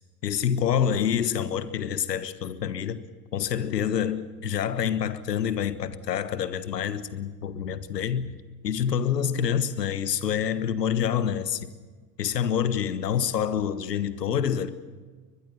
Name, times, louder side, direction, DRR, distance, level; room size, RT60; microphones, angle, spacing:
voice 1, 0.2-3.0 3.3-8.3 8.6-11.7 12.2-14.7, left 8 dB, 85° left, 1.4 m, -27 dB
22.5 x 21.5 x 7.2 m
hypercardioid pair, 75°, 47 cm